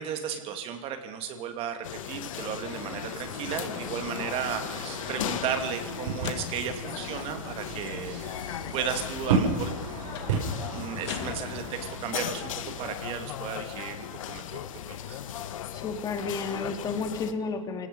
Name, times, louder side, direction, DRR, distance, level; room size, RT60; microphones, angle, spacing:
voice 1, 0.0-8.4 8.7-9.7 10.7-15.2, right 8 dB, 35° right, 7 dB, 2.6 m, -35 dB
sound 1, 1.8-17.3, left 10 dB, 75° left, 1.5 m, -37 dB
sound 2, 2.4-12.9, right 4 dB, 70° right, 7.0 m, -35 dB
sound 3, 6.2-6.8 10.1-10.4 11.1-12.1, left 10 dB, 55° left, 2.1 m, -40 dB
voice 2, 15.7-17.9, left 4 dB, 20° left, 6 dB, 2.6 m, -32 dB
28.0 x 18.5 x 5.5 m, 1.3 s
supercardioid pair, 145°, 17 cm